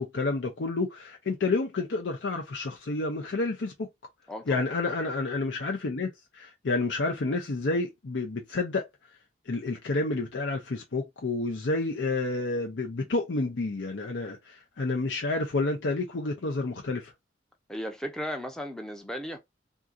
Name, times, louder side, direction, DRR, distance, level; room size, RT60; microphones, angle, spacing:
voice 1, 0.0-3.9 4.5-8.9 9.5-17.1, left 3 dB, 80° left, 0.6 m, -29 dB
voice 2, 4.3-4.6 17.7-19.4, equal, 5° left, 0.5 m, -35 dB
3.7 x 2.8 x 2.3 m
head